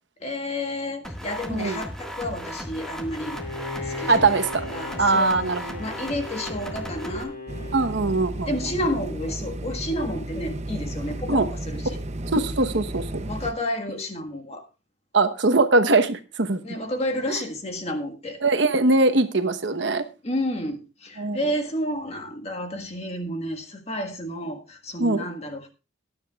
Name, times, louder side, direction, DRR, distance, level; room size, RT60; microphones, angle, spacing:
voice 1, 0.2-3.4 3.8-5.5 5.8-7.4 8.5-12.0 13.3-14.6 16.6-18.4 20.2-25.7, left 1 dB, 35° left, 4 dB, 1.6 m, -31 dB
sound 1, 1.0-7.2, equal, 5° left, 1.7 m, -36 dB
voice 2, 1.5-1.8 4.1-4.6 5.0-5.8 7.7-8.5 11.3-11.5 12.3-13.1 15.1-16.6 18.4-20.0 21.2-21.4 25.0-25.2, right 3 dB, 65° right, 8 dB, 1.1 m, -21 dB
Bowed string instrument, 3.2-8.8, left 2 dB, 50° left, 3.1 m, -37 dB
sound 2, 7.5-13.5, right 1 dB, 35° right, 0.7 m, -33 dB
19.5 x 10.0 x 2.4 m, 0.28 s
head